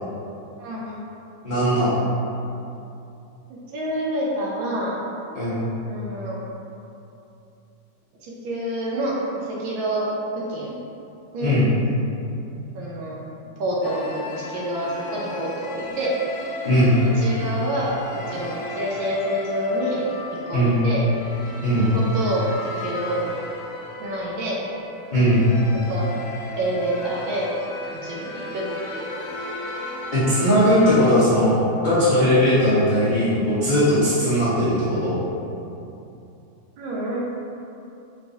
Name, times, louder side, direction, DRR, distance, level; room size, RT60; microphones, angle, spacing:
voice 1, 0.6-1.0 3.7-4.9 5.8-6.4 8.2-10.1 10.5-10.8 11.3-11.6 12.7-13.2 13.6-16.1 17.2-17.9 18.3-21.0 21.9-22.5 22.8-23.2 24.0-24.6 25.9-26.1 26.6-27.5 28.0-29.1 34.1-34.5 36.8-37.2, right 1 dB, 70° right, -4 dB, 1.3 m, -27 dB
voice 2, 1.4-2.0 5.3-5.7 11.4-11.7 16.6-17.0 20.5-20.8 21.6-21.9 25.1-25.4 30.1-31.6 31.8-35.2, equal, 55° left, -14 dB, 0.5 m, -19 dB
sound 1, 13.8-31.0, left 2 dB, 80° left, 1.4 m, -35 dB
4.4 x 3.1 x 2.6 m, 2.8 s
omnidirectional pair, 2.4 m